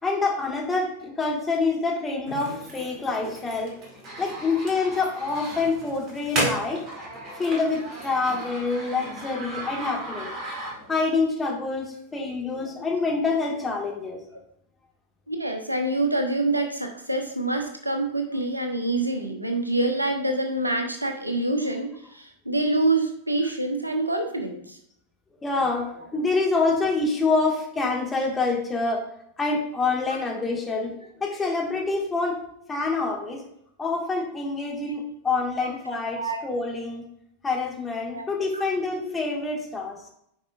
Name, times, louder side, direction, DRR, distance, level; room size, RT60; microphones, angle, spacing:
voice 1, 0.0-3.8 4.2-6.8 7.2-10.3 10.9-14.2 25.4-29.1 29.4-32.4 32.7-33.4 33.8-37.1 37.4-40.0, left 3 dB, 15° left, -1 dB, 1.7 m, -26 dB
sound 1, 2.3-11.1, right 1 dB, 35° right, 2.2 m, -35 dB
voice 2, 15.3-24.8 35.6-36.4 38.1-38.2 38.5-38.6 38.9-39.1, right 2 dB, 85° right, 4 dB, 1.0 m, -26 dB
9.4 x 4.9 x 2.4 m, 0.72 s
figure-of-eight pair, 90°, 0 cm